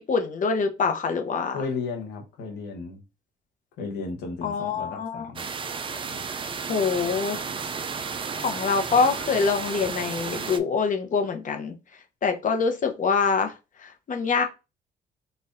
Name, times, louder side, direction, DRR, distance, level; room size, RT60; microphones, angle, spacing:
voice 1, 0.0-1.6 4.4-5.3 6.7-7.5 8.4-11.7 12.2-14.4, left 5 dB, 50° left, 5 dB, 0.8 m, -25 dB
voice 2, 1.5-3.0 3.8-5.4 6.1-6.2, left 4 dB, 90° left, 1 dB, 1.0 m, -34 dB
sound 1, 5.4-10.6, right 5 dB, 30° right, 0.4 m, -33 dB
4.0 x 2.5 x 2.6 m, 0.28 s
supercardioid pair, 75°, 17 cm